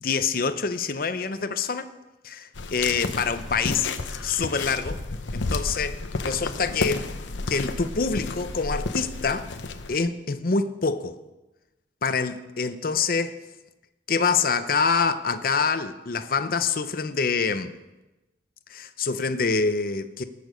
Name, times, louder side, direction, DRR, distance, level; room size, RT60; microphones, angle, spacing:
voice 1, 0.0-1.9 2.2-3.9 4.2-5.0 5.3-7.1 7.5-9.5 9.9-11.2 12.0-13.4 14.1-17.7 18.7-20.2, left 5 dB, 50° left, 11 dB, 0.6 m, -26 dB
sound 1, 2.6-10.0, left 3 dB, 90° left, 0.8 m, -31 dB
19.0 x 6.8 x 5.2 m, 1.0 s
head